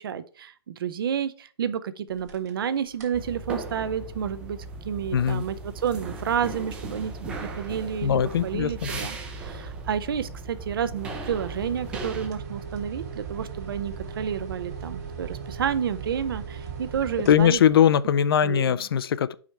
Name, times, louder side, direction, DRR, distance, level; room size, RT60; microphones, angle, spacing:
voice 1, 0.0-4.6 4.8-17.6 18.4-18.8, right 8 dB, 55° right, 0.6 m, -30 dB
sound 1, 2.1-2.6 2.9-3.3 3.7-18.0, right 6 dB, 40° right, 1.4 m, -40 dB
sound 2, 3.1-12.3, right 2 dB, 5° right, 0.4 m, -37 dB
voice 2, 5.1-5.4 8.0-8.9 17.3-19.3, left 9 dB, 60° left, 0.4 m, -21 dB
4.9 x 4.5 x 5.4 m
hypercardioid pair, 165°, 14 cm